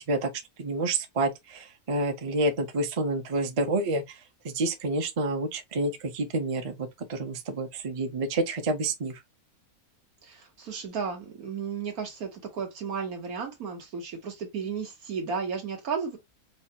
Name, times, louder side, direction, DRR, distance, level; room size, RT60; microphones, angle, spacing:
voice 1, 0.6-4.0 4.4-9.2, right 2 dB, 35° right, 0.5 m, -28 dB
voice 2, 10.2-16.2, right 6 dB, 80° right, 1.7 m, -34 dB
4.7 x 2.2 x 2.7 m
omnidirectional pair, 1.5 m